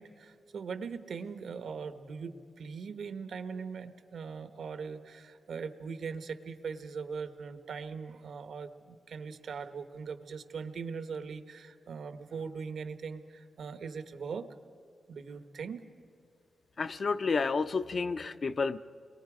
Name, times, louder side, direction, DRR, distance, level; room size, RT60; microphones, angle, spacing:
voice 1, 0.0-14.5 15.1-15.8, right 5 dB, 75° right, 10 dB, 1.1 m, -40 dB
voice 2, 16.8-18.8, left 4 dB, 45° left, 13 dB, 0.6 m, -30 dB
30.0 x 22.5 x 5.0 m, 2.4 s
wide cardioid pair, 150°, 0 cm